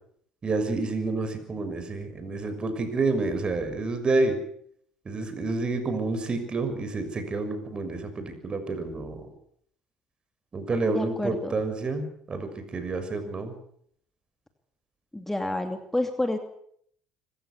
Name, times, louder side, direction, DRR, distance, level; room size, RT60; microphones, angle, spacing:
voice 1, 0.4-4.4 5.0-9.3 10.5-13.5, right 3 dB, 35° right, 9 dB, 6.4 m, -29 dB
voice 2, 10.9-11.5 15.1-16.4, left 1 dB, 10° left, 6 dB, 2.6 m, -29 dB
25.5 x 15.5 x 8.3 m, 0.67 s
supercardioid pair, 70°, 3 cm